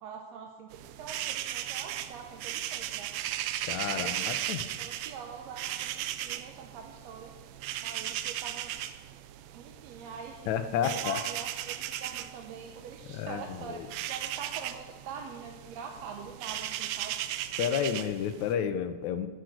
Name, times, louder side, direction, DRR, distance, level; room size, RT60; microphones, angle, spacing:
voice 1, 0.0-3.1 3.8-4.2 4.8-7.3 7.8-8.7 9.5-10.5 10.8-17.1, right 6 dB, 70° right, 2 dB, 1.8 m, -44 dB
sound 1, 0.7-18.5, right 12 dB, 85° right, 1.5 m, -37 dB
voice 2, 3.7-4.6 10.5-11.2 13.1-13.9 17.6-19.3, left 8 dB, 75° left, 8 dB, 2.0 m, -31 dB
10.5 x 6.4 x 7.8 m, 1.3 s
omnidirectional pair, 3.5 m